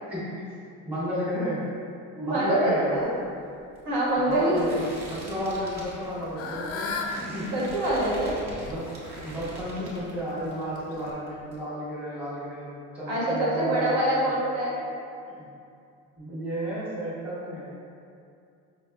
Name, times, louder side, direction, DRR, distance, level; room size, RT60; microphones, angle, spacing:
voice 1, 0.1-0.5 0.8-1.7 2.2-3.1 4.2-7.5 8.6-12.7 12.9-14.2 15.3-15.5 16.2-17.7, equal, 5° right, -10 dB, 0.9 m, -33 dB
voice 2, 2.1-3.0 3.8-4.7 7.5-8.4 13.1-14.8, right 1 dB, 70° right, -7 dB, 1.4 m, -25 dB
sound 1, 2.9-10.6 10.9-11.6, right 1 dB, 45° right, 0.9 m, -43 dB
Fowl / Bird, 5.8-11.1, left 4 dB, 40° left, 0.4 m, -38 dB
5.2 x 2.4 x 2.3 m, 2.4 s
cardioid pair, 125°, 38 cm